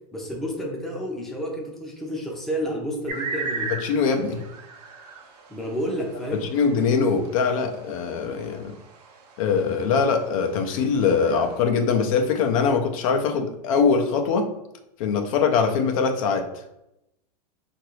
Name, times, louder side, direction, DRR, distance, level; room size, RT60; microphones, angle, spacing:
voice 1, 0.1-3.7 5.5-6.5, equal, ahead, -2 dB, 0.5 m, -30 dB
sound 1, 3.1-11.6, right 4 dB, 70° right, 0.7 m, -38 dB
voice 2, 3.8-4.4 6.5-8.7 9.4-14.5 15.0-16.5, left 5 dB, 55° left, 4 dB, 0.5 m, -22 dB
3.0 x 2.5 x 3.0 m, 0.86 s
hypercardioid pair, 125°, 21 cm